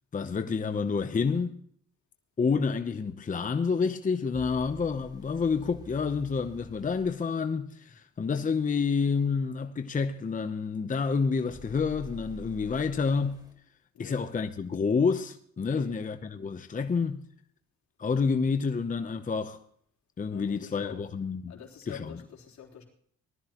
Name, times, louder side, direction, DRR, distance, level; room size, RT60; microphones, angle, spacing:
voice 1, 0.1-1.6 2.4-13.4 14.0-17.2 18.0-19.6 20.2-21.5 21.9-22.2, left 5 dB, 25° left, 0.8 m, -29 dB
sound 1, 4.3-7.2 11.5-13.5, equal, 15° right, 3.2 m, -48 dB
voice 2, 15.6-16.0 20.3-21.0 21.5-22.8, left 8 dB, 70° left, 3.7 m, -46 dB
19.0 x 13.0 x 3.0 m
cardioid pair, 90°, 30 cm